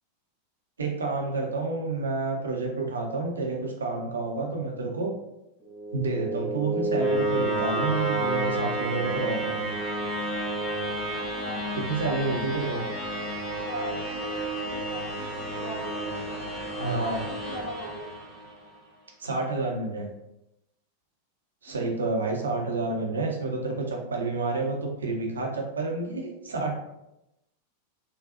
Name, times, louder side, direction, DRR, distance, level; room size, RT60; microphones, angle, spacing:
voice 1, 0.8-5.1 5.9-9.8 11.9-12.8 16.8-17.2 19.2-20.1 21.6-26.7, right 3 dB, 70° right, 0 dB, 0.6 m, -29 dB
sound 1, 5.6-18.7, right 2 dB, 15° left, 0.9 m, -31 dB
voice 2, 11.3-13.2 13.6-16.1 16.8-18.1 21.7-22.0, equal, 55° left, -4 dB, 1.5 m, -40 dB
3.7 x 2.3 x 2.5 m, 0.88 s
figure-of-eight pair, 90°, 0 cm